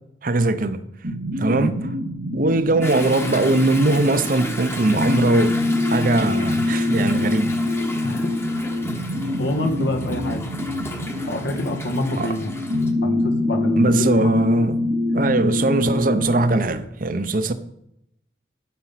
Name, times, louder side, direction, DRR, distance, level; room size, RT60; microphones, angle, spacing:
voice 1, 0.2-0.8 1.4-1.7 2.3-5.6 5.9-7.6 12.2-12.3 13.8-14.8 15.1-17.5, right 2 dB, 50° right, 0.7 m, -20 dB
sound 1, 1.0-16.6, left 2 dB, 90° right, 2.8 m, -25 dB
Toilet flush / Drip / Trickle dribble, 2.8-12.9, left 1 dB, 15° left, 1.1 m, -34 dB
voice 2, 8.0-8.4 9.4-10.5 11.3-14.3, left 1 dB, 80° left, 1.7 m, -26 dB
12.5 x 5.4 x 5.8 m
head